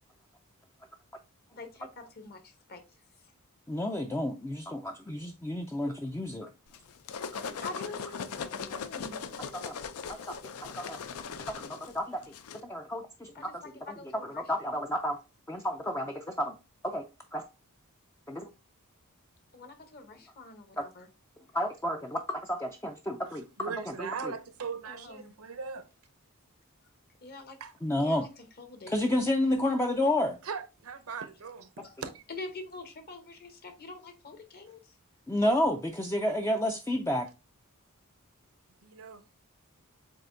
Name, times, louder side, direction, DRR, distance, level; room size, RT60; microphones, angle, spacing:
voice 1, 1.5-2.8 7.6-9.2 13.3-14.8 19.5-21.1 24.8-25.3 27.2-27.6 28.0-28.9 32.3-34.9, left 3 dB, 45° left, 1.0 m, -45 dB
voice 2, 3.7-6.5 7.5-7.6 9.5-9.7 10.1-11.0 11.5-12.2 12.5-13.6 13.9-15.2 15.5-16.6 16.8-17.5 18.3-18.5 20.8-20.9 21.5-23.5 23.9-24.3 27.8-28.3 28.9-30.4 35.3-37.3, left 1 dB, 10° left, 0.4 m, -31 dB
sound 1, 6.7-12.6, left 6 dB, 75° left, 0.5 m, -39 dB
voice 3, 23.6-25.9 27.6-27.7 30.4-32.2 38.8-39.2, right 5 dB, 70° right, 0.7 m, -39 dB
7.5 x 2.7 x 2.6 m
head